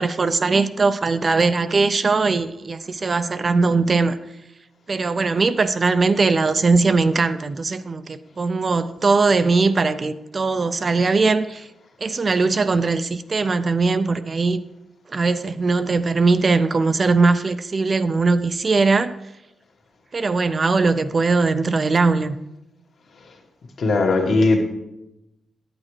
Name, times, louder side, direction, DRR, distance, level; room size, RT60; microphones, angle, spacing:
voice 1, 0.0-4.2 4.9-11.7 12.0-14.6 15.1-19.2 20.1-22.4, right 3 dB, 35° right, 0.3 m, -20 dB
voice 2, 23.8-24.6, left 3 dB, 65° left, 1.5 m, -18 dB
9.6 x 8.6 x 3.2 m
wide cardioid pair, 135°, 0 cm